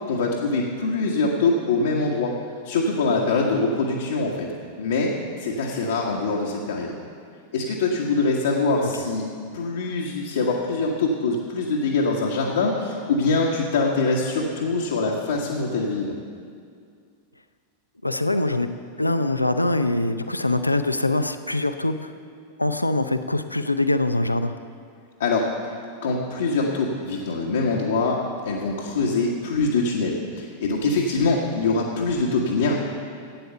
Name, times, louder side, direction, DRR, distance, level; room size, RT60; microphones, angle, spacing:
voice 1, 0.1-2.3 2.6-4.5 4.8-6.9 7.5-9.2 9.5-16.1 25.2-25.5 26.0-28.2 28.4-32.7, left 3 dB, 65° left, -3 dB, 1.4 m, -23 dB
voice 2, 18.0-18.7 19.0-22.1 22.6-24.5, left 2 dB, 85° left, 9 dB, 0.6 m, -23 dB
13.5 x 9.2 x 6.8 m, 2.2 s
figure-of-eight pair, 90°, 0 cm